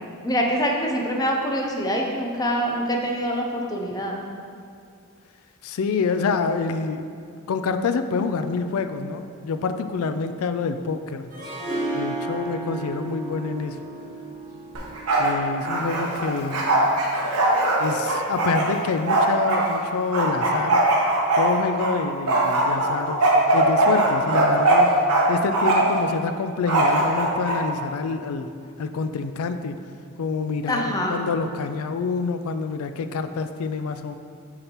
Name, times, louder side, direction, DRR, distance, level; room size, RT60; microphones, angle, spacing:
voice 1, 0.2-4.2 30.7-31.2, equal, 15° left, 0 dB, 0.6 m, -25 dB
voice 2, 5.6-7.0 7.5-11.3 11.9-13.8 15.2-16.7 17.8-20.8 21.3-25.0 25.3-28.5 28.8-29.8 30.2-34.1, left 4 dB, 70° left, 9 dB, 0.4 m, -27 dB
Harp, 11.3-16.4, right 2 dB, 40° right, 1.6 m, -33 dB
Bark, 14.8-15.3 15.6-19.6 20.1-21.9 22.3-25.2 25.5-26.0 26.7-27.6, right 2 dB, 80° right, 1.0 m, -20 dB
6.5 x 5.6 x 3.0 m, 2.2 s
head